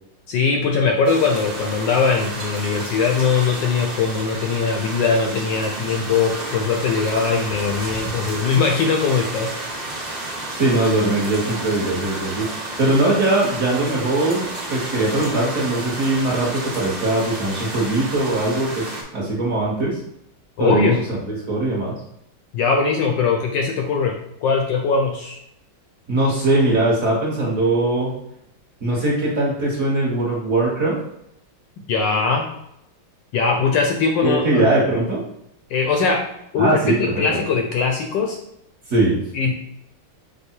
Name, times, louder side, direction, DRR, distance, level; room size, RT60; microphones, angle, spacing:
voice 1, 0.3-9.5 20.6-21.0 22.5-24.1 24.4-25.4 31.9-32.5 33.3-34.7 35.7-36.2 36.5-38.4 39.3-39.5, left 5 dB, 75° left, 2 dB, 1.1 m, -20 dB
sound 1, 1.0-19.0, right 2 dB, 85° right, 0.4 m, -31 dB
voice 2, 10.6-12.5 12.8-20.0 20.6-20.9 21.3-21.9 26.1-28.1 28.8-31.0 34.2-35.2 36.6-37.4 38.9-39.2, right 2 dB, 50° right, -4 dB, 1.3 m, -20 dB
5.5 x 2.0 x 4.4 m, 0.78 s
omnidirectional pair, 2.3 m